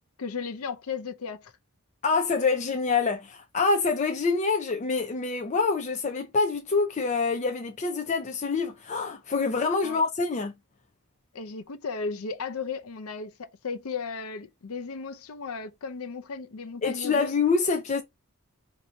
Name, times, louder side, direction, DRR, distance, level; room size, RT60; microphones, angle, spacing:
voice 1, 0.2-1.5 9.8-10.0 11.3-17.3, left 5 dB, 85° left, 0.6 m, -35 dB
voice 2, 2.0-10.5 16.8-18.0, left 4 dB, 35° left, 0.5 m, -26 dB
2.8 x 2.6 x 4.3 m
head